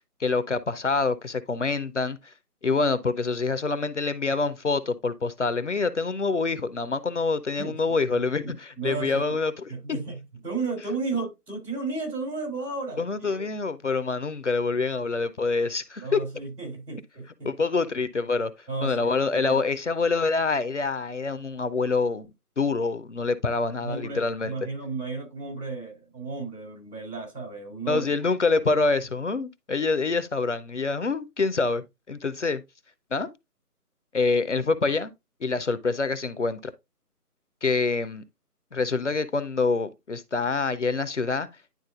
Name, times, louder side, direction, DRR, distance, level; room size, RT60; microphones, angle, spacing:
voice 1, 0.2-2.3 2.6-9.5 9.9-10.0 13.0-16.2 17.4-18.5 18.8-22.3 22.6-24.5 27.9-32.6 33.1-33.3 34.1-35.1 35.4-36.6 37.6-38.2 38.7-41.5, left 4 dB, 50° left, 0.6 m, -26 dB
voice 2, 7.6-9.4 9.7-13.4 16.0-17.5 18.7-19.1 19.4-19.6 23.8-28.0, right 3 dB, 80° right, 3.5 m, -34 dB
10.5 x 3.8 x 2.4 m
figure-of-eight pair, 155°, 47 cm